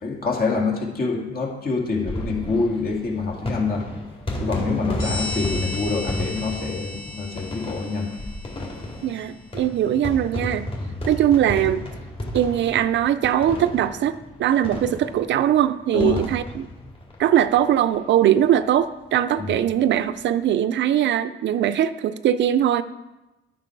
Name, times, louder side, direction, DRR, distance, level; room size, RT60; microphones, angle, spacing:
voice 1, 0.0-3.9 4.4-8.1 10.8-10.9 15.9-16.2 19.4-19.5, left 4 dB, 50° left, 1 dB, 2.1 m, -26 dB
sound 1, 1.9-18.0 18.3-18.4 18.6-18.7 19.9-20.2, left 1 dB, 30° left, 2.4 m, -33 dB
sound 2, 5.0-9.3, left 2 dB, 80° left, 1.8 m, -35 dB
voice 2, 9.0-10.7 11.1-11.8 12.3-16.7 17.2-22.8, right 10 dB, 65° right, 13 dB, 0.5 m, -21 dB
9.2 x 6.1 x 4.6 m, 1.0 s
cardioid pair, 90°, 20 cm